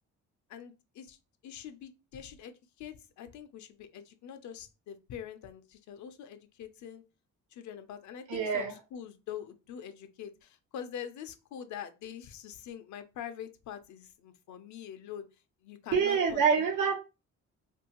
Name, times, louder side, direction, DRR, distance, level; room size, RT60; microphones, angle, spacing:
voice 1, 0.5-1.2 1.4-7.0 7.5-15.3 15.6-16.4, left 9 dB, 70° left, 0.6 m, -44 dB
voice 2, 8.3-8.7 15.9-16.9, right 6 dB, 80° right, 0.9 m, -26 dB
2.7 x 2.6 x 2.9 m
cardioid pair, 90°, 30 cm